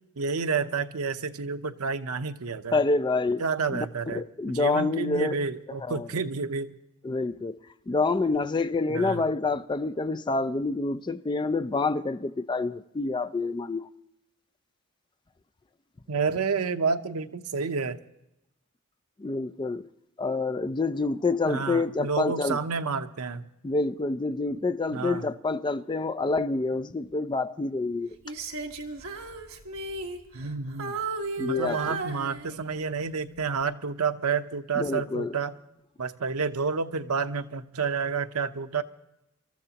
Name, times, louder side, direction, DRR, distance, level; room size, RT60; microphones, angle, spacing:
voice 1, 0.2-2.8 3.4-4.2 4.5-6.7 8.9-9.2 16.1-18.0 21.4-23.4 24.9-25.2 30.3-31.0 31.4-35.5 36.0-38.8, right 5 dB, 85° right, 0.8 m, -29 dB
voice 2, 2.7-3.4 3.7-3.9 4.1-5.4 5.8-6.1 7.0-7.6 7.9-13.9 19.2-19.9 20.2-22.6 23.6-28.2 31.4-31.9 34.8-35.3, left 3 dB, 20° left, 0.4 m, -27 dB
Female singing, 28.3-30.5 30.8-32.8 33.4-33.6, right 3 dB, 65° right, 1.4 m, -35 dB
26.5 x 13.5 x 2.9 m
head